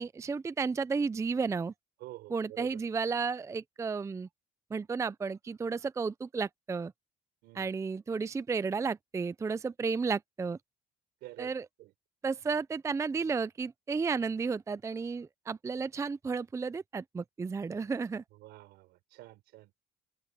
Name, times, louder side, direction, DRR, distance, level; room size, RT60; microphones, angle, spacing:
voice 1, 0.0-1.7 2.3-4.3 4.7-6.9 7.5-10.6 11.4-11.7 12.2-18.2, right 5 dB, 15° right, 0.4 m, -33 dB
voice 2, 2.0-2.8 7.4-7.7 11.2-11.5 11.8-11.9 18.3-19.7, right 17 dB, 90° right, 5.0 m, -48 dB
open air
cardioid pair, 110°, 17 cm